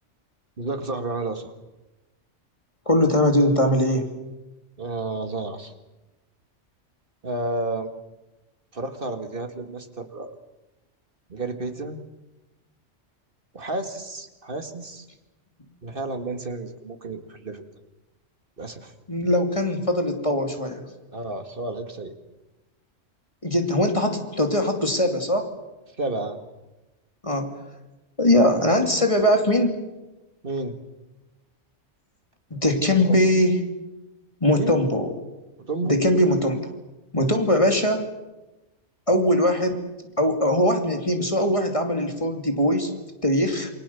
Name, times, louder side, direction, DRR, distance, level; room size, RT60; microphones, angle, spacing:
voice 1, 0.6-1.5 4.8-5.7 7.2-7.9 8.7-10.3 11.3-12.0 13.5-15.1 15.8-17.7 18.6-18.9 21.1-22.1 26.0-26.4 30.4-30.7 32.8-32.9 34.5-34.7 35.6-36.0, right 2 dB, 45° right, 7 dB, 2.3 m, -31 dB
voice 2, 2.9-4.1 19.1-20.8 23.4-25.5 27.2-27.5 28.2-29.8 32.5-33.6 34.4-35.1 35.8-36.6 37.1-38.1 39.1-39.8 40.2-42.9 43.2-43.7, left 1 dB, 25° left, 4 dB, 2.8 m, -21 dB
28.5 x 23.0 x 7.1 m, 1.0 s
omnidirectional pair, 1.2 m